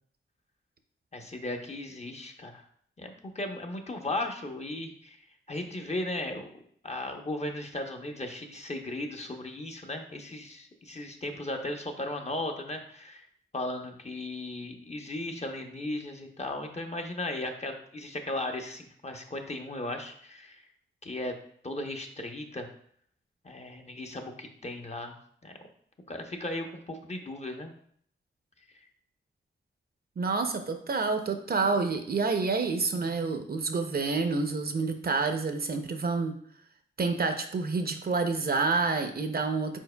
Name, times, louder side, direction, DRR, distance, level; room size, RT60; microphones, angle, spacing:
voice 1, 1.1-2.6 3.0-6.5 6.8-13.3 13.5-20.7 21.0-21.3 21.6-22.7 23.4-25.1 25.4-25.5 26.1-27.7, left 1 dB, 30° left, 3 dB, 0.7 m, -36 dB
voice 2, 30.2-36.3 37.0-39.8, right 4 dB, 45° right, 6 dB, 0.5 m, -28 dB
4.5 x 4.3 x 2.2 m, 0.63 s
cardioid pair, 60°, 21 cm